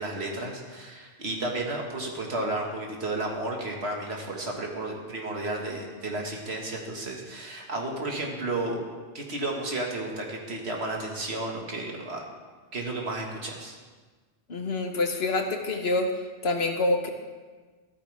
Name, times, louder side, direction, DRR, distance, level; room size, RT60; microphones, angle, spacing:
voice 1, 0.0-8.8 9.1-12.2 12.7-13.8, right 2 dB, 65° right, 0 dB, 2.0 m, -32 dB
voice 2, 14.5-16.1 16.4-17.1, left 2 dB, 60° left, 4 dB, 1.4 m, -26 dB
14.5 x 13.0 x 3.4 m, 1.4 s
omnidirectional pair, 1.2 m